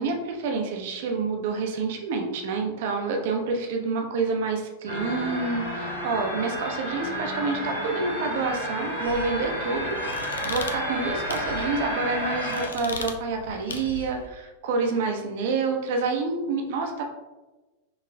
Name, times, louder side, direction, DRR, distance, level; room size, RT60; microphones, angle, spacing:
voice 1, 0.0-10.0 10.4-17.0, right 4 dB, 50° right, 3 dB, 0.7 m, -28 dB
sound 1, 4.9-12.7, equal, 80° right, 1.4 m, -31 dB
sound 2, 9.0-14.3, left 4 dB, 70° left, 0.4 m, -38 dB
5.6 x 3.2 x 2.2 m, 1.2 s
figure-of-eight pair, 90°, 0 cm